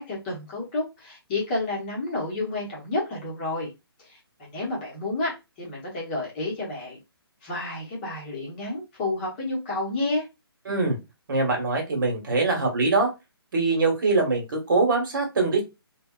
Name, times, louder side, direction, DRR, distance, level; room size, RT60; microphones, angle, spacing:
voice 1, 0.0-3.7 4.0-4.2 4.5-7.0 7.4-10.3, left 2 dB, 25° left, 0.9 m, -30 dB
voice 2, 10.7-11.0 11.3-13.1 13.5-15.6, right 3 dB, 55° right, 1.2 m, -23 dB
3.3 x 2.2 x 2.3 m
hypercardioid pair, 160°, 13 cm